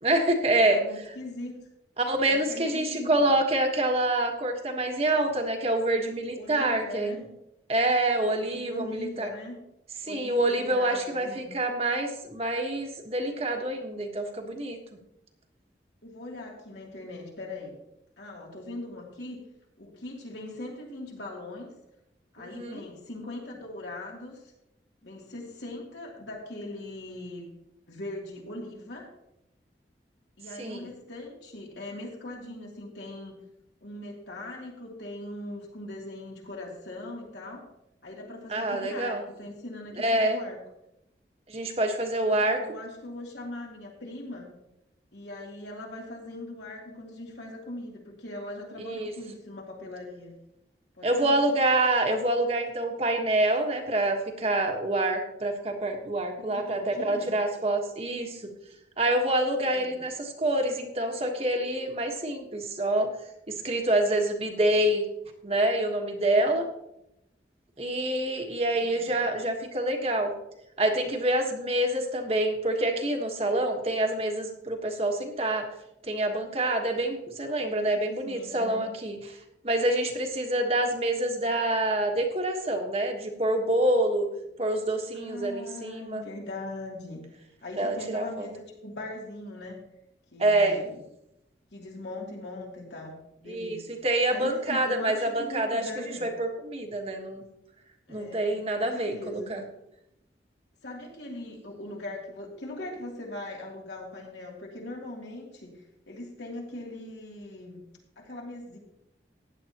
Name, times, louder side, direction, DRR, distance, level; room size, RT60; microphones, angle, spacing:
voice 1, 0.0-0.8 2.0-7.3 7.7-9.3 10.1-14.8 22.4-22.8 30.6-30.9 38.5-39.2 40.0-40.4 41.5-42.6 48.8-49.1 51.0-58.5 59.0-63.1 63.5-65.0 65.4-66.7 67.8-70.3 70.8-75.7 76.0-79.2 79.6-84.3 84.6-86.2 87.8-88.5 90.4-90.8 93.5-97.4 98.1-99.6, right 1 dB, 35° right, 3 dB, 1.4 m, -27 dB
voice 2, 0.5-1.5 2.2-3.3 6.4-7.3 8.4-9.6 10.0-11.5 16.0-17.7 18.2-19.4 19.8-21.7 22.3-24.4 25.0-27.5 27.9-29.1 30.4-33.4 33.8-37.7 38.0-40.6 42.2-44.5 45.1-50.3 50.9-51.4 56.4-57.4 59.7-60.0 66.3-66.5 68.7-69.3 77.6-78.9 85.1-87.2 87.6-89.8 90.3-91.0 91.7-93.8 94.3-96.3 98.1-99.6 100.8-107.8 108.2-108.8, left 1 dB, 80° left, -1 dB, 2.9 m, -40 dB
15.0 x 9.9 x 3.0 m, 0.84 s
head